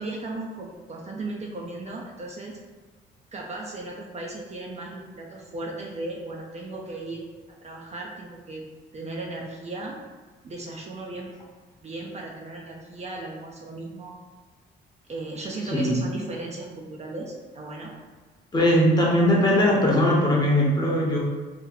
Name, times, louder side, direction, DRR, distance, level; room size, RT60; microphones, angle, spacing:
voice 1, 0.0-2.6 3.3-7.3 7.6-8.6 8.9-10.0 10.4-11.3 11.8-14.1 15.1-17.9 18.7-18.8, right 2 dB, 35° right, -1 dB, 0.5 m, -36 dB
voice 2, 18.5-21.2, left 1 dB, 20° left, -3 dB, 0.8 m, -20 dB
2.9 x 2.0 x 3.8 m, 1.3 s
cardioid pair, 90°, 20 cm